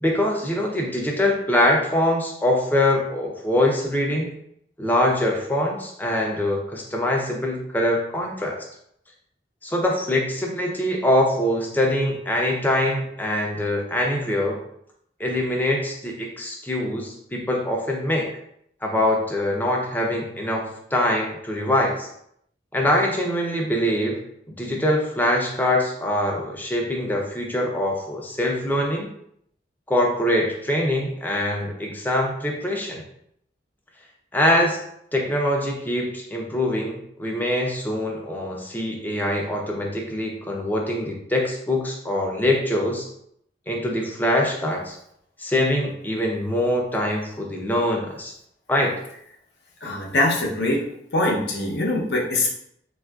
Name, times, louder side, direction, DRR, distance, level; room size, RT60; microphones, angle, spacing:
voice 1, 0.0-4.3 4.8-8.7 9.6-14.6 15.2-18.3 18.8-22.1 22.7-24.2 24.6-29.1 29.9-33.0 34.3-34.8 35.1-43.1 43.7-45.0 45.4-48.3 48.7-48.9, left 1 dB, 10° left, 0 dB, 0.4 m, -23 dB
voice 2, 49.8-50.8 51.1-52.5, left 2 dB, 75° left, -1 dB, 0.7 m, -23 dB
3.5 x 2.4 x 2.3 m, 0.72 s
head